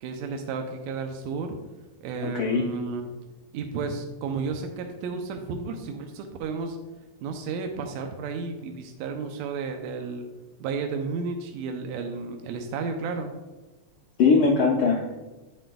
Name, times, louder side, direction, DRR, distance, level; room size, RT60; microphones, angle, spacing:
voice 1, 0.0-1.6 2.0-3.1 3.5-6.8 7.2-10.3 10.6-13.3, right 4 dB, 80° right, 4 dB, 1.9 m, -32 dB
voice 2, 2.2-2.7 14.2-15.2, left 4 dB, 85° left, 0 dB, 1.1 m, -21 dB
10.0 x 7.6 x 2.3 m, 1.1 s
omnidirectional pair, 3.3 m